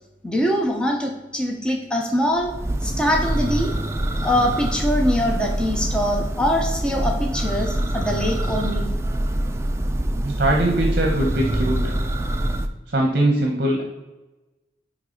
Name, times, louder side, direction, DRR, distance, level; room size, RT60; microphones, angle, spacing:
voice 1, 0.2-2.5 2.8-3.7 4.2-8.9, equal, 5° left, 0 dB, 0.7 m, -23 dB
Church bell, 2.4-12.7, right 1 dB, 15° right, 0.3 m, -25 dB
voice 2, 10.2-11.9 12.9-13.8, right 1 dB, 55° right, 1 dB, 0.9 m, -21 dB
9.4 x 3.3 x 3.8 m, 1.1 s
head